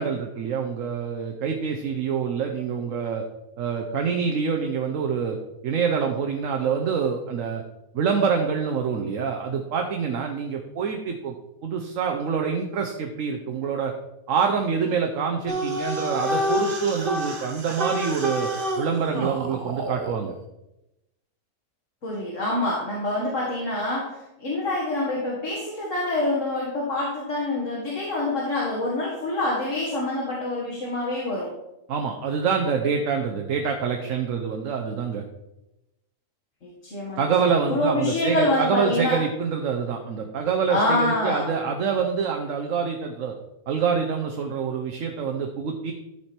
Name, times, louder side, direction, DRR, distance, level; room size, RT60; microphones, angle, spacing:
voice 1, 0.0-3.2 3.6-5.4 5.6-7.6 7.9-11.4 11.6-13.9 14.3-18.5 18.8-20.4 31.9-35.2 37.2-43.3 43.7-45.9, right 6 dB, 60° right, 3 dB, 1.1 m, -26 dB
sound 1, 15.5-20.2, equal, 40° right, 1.2 m, -28 dB
voice 2, 22.0-31.5 36.6-39.2 40.7-41.5, left 2 dB, 55° left, -5 dB, 2.2 m, -26 dB
13.0 x 4.9 x 4.4 m, 0.92 s
omnidirectional pair, 1.6 m